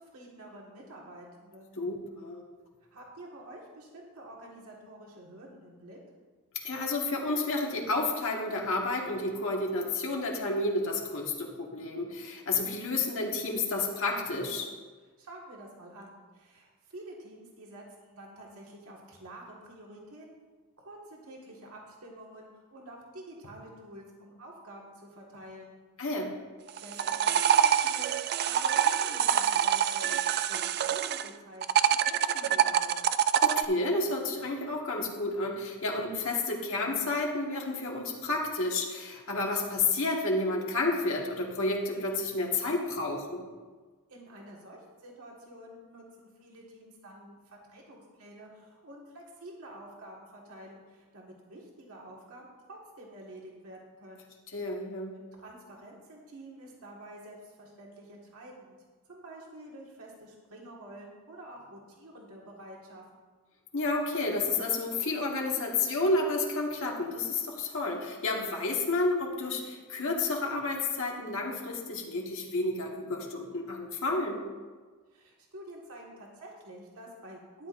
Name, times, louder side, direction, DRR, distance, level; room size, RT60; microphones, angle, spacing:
voice 1, 0.0-1.8 2.9-6.0 15.2-20.3 20.8-25.8 26.8-30.2 30.5-32.9 44.1-54.3 55.4-58.8 59.1-63.0 75.1-77.7, right 1 dB, 75° right, -2 dB, 1.8 m, -48 dB
voice 2, 1.8-2.4 6.6-14.7 26.0-26.3 33.4-43.4 54.5-55.2 63.7-74.4, left 2 dB, 65° left, -1 dB, 1.7 m, -30 dB
sound 1, 26.7-31.3 31.6-33.6, right 9 dB, 45° right, 0.3 m, -25 dB
12.5 x 10.5 x 2.6 m, 1.4 s
head